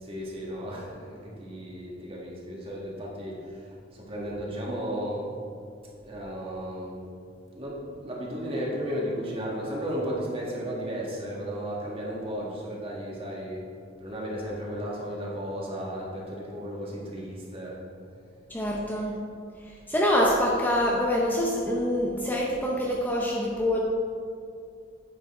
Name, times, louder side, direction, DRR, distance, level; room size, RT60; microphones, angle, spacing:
voice 1, 0.0-3.4 3.9-5.3 6.0-7.0 7.5-13.6 14.0-17.8, equal, 30° right, -4 dB, 1.9 m, -34 dB
voice 2, 18.5-19.2 19.6-23.8, left 1 dB, 10° left, -3 dB, 0.7 m, -25 dB
9.3 x 7.0 x 3.8 m, 2.3 s
head